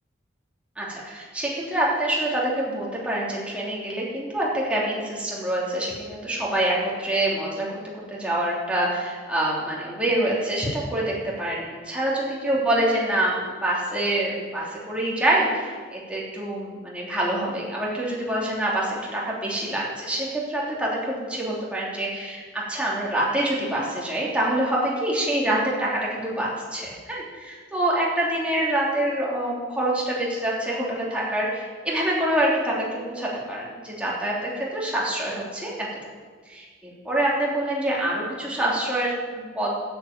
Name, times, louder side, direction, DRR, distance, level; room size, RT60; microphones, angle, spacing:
voice 1, 0.8-7.7 8.1-35.9 36.5-39.7, right 1 dB, 5° right, -5 dB, 3.0 m, -26 dB
10.0 x 8.3 x 8.9 m, 1.5 s
head